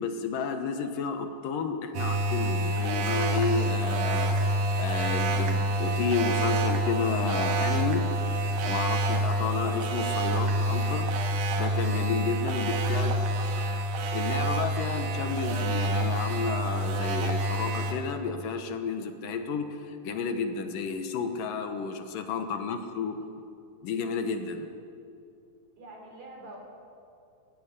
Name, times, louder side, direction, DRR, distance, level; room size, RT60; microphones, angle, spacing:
voice 1, 0.0-8.0 8.6-11.1 11.6-13.1 14.1-23.2 23.8-24.7, left 5 dB, 75° left, 6 dB, 2.8 m, -31 dB
sound 1, 1.9-17.9, right 1 dB, 85° right, 3.3 m, -27 dB
voice 2, 12.4-13.0 13.3-13.8 25.8-26.6, right 1 dB, 55° right, 1 dB, 5.0 m, -45 dB
17.5 x 15.5 x 10.0 m, 2.5 s
omnidirectional pair, 4.1 m